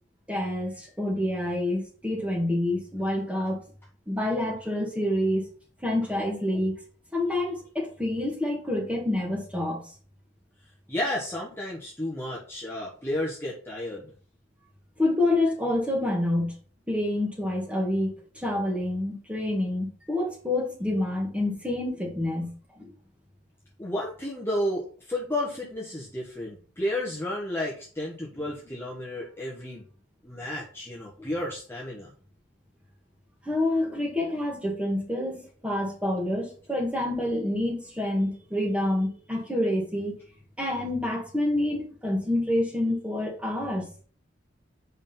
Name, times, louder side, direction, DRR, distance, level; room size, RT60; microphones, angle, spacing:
voice 1, 0.3-3.6 4.1-5.4 5.8-6.7 7.1-9.8 15.0-16.5 16.9-22.5 22.8-22.9 28.3-28.5 33.4-40.1 40.6-43.9, left 1 dB, 5° right, 1.9 m, -27 dB
voice 2, 10.9-14.1 23.8-29.8 30.2-32.1, left 1 dB, 10° left, 1.4 m, -32 dB
5.4 x 5.1 x 5.7 m
head